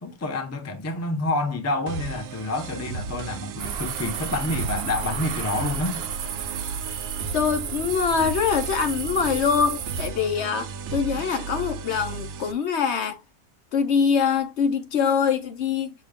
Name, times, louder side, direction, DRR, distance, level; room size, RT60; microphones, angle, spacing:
voice 1, 0.0-6.1, left 2 dB, 20° left, 0.5 m, -28 dB
sound 1, 1.9-12.5, right 5 dB, 80° right, 1.0 m, -35 dB
sound 2, 3.6-10.1, right 7 dB, 60° right, 0.7 m, -33 dB
voice 2, 7.3-13.2 13.7-15.9, left 6 dB, 60° left, 0.8 m, -24 dB
6.5 x 2.3 x 3.5 m
omnidirectional pair, 1.5 m